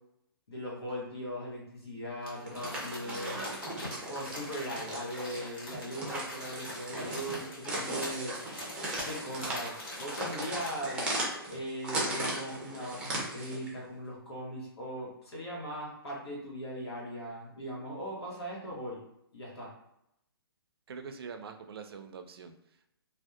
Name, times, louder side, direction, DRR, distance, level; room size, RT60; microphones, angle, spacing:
voice 1, 0.5-3.4 4.1-8.3 9.0-11.2 11.5-19.0 19.3-19.7, equal, 85° left, -4 dB, 1.0 m, -39 dB
Crumpling crinkling, 2.2-10.9 11.3-11.4, left 1 dB, 60° left, 1.4 m, -44 dB
sound 1, 2.4-13.7, right 1 dB, 5° right, 0.4 m, -37 dB
voice 2, 3.0-3.6 20.9-22.5, right 5 dB, 70° right, 6 dB, 0.4 m, -44 dB
2.6 x 2.1 x 2.3 m, 0.80 s
hypercardioid pair, 145°, 13 cm